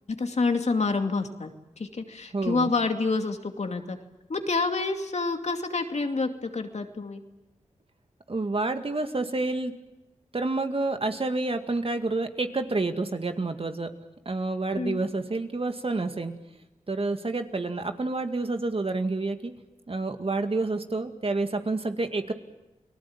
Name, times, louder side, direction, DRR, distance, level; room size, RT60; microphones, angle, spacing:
voice 1, 0.2-1.5 1.8-4.0 4.3-7.2 14.7-15.0, left 3 dB, 55° left, 5 dB, 2.6 m, -28 dB
voice 2, 2.3-2.7 8.3-9.7 10.3-13.9 14.3-16.3 16.9-19.5 19.9-22.3, right 3 dB, 45° right, 7 dB, 2.3 m, -28 dB
29.5 x 19.0 x 8.9 m, 1.0 s
cardioid pair, 45°, 13 cm